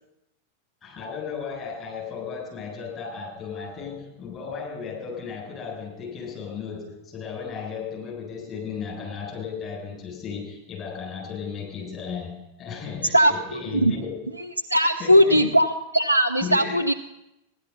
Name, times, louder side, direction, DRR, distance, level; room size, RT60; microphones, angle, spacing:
voice 1, 0.8-14.3 15.0-15.5 16.4-16.8, left 6 dB, 30° left, -2 dB, 7.4 m, -35 dB
voice 2, 13.1-13.9 14.7-16.9, equal, 90° right, 2 dB, 0.5 m, -19 dB
15.5 x 11.5 x 5.4 m, 0.87 s
figure-of-eight pair, 90°, 0 cm